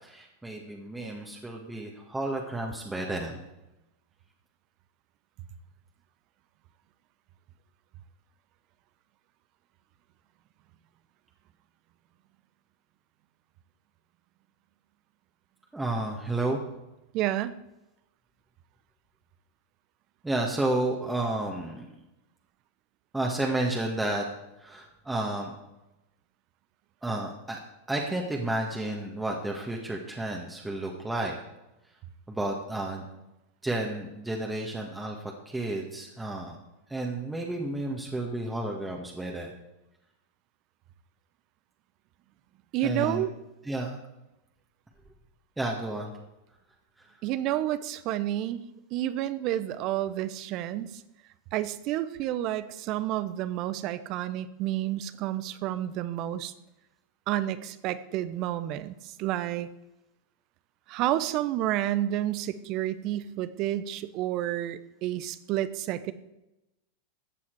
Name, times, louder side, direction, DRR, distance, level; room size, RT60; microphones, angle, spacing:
voice 1, 0.0-3.4 15.7-16.6 20.2-21.9 23.1-24.2 24.6-25.5 27.0-27.6 27.9-31.3 32.3-33.1 33.6-36.6 36.9-39.5 42.8-43.2 43.7-44.0 45.6-46.1 47.0-47.2, right 2 dB, 10° right, 0 dB, 1.7 m, -31 dB
voice 2, 17.1-17.5 42.7-43.3 47.2-48.6 48.9-51.0 51.5-56.5 57.3-59.7 60.9-66.1, right 13 dB, 50° right, 14 dB, 0.8 m, -30 dB
14.5 x 8.2 x 4.7 m, 0.94 s
hypercardioid pair, 95°, 0 cm